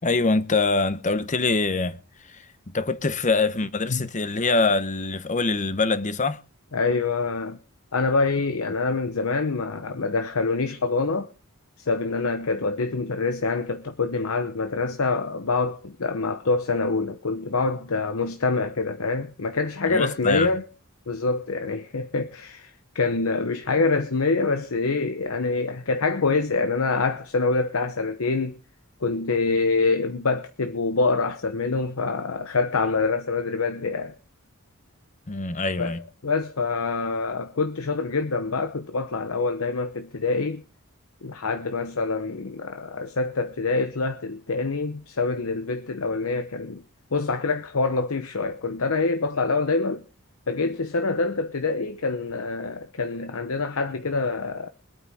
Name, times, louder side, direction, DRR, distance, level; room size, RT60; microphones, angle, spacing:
voice 1, 0.0-2.0 2.3-6.4 19.9-20.5 35.3-36.0, left 3 dB, 35° left, 0.9 m, -24 dB
voice 2, 6.7-7.6 7.9-11.3 11.8-20.7 21.1-28.6 29.0-34.1 35.8-40.6 41.2-46.8 47.1-50.0 50.5-54.7, left 3 dB, 75° left, 0.9 m, -25 dB
23.5 x 9.0 x 3.6 m
head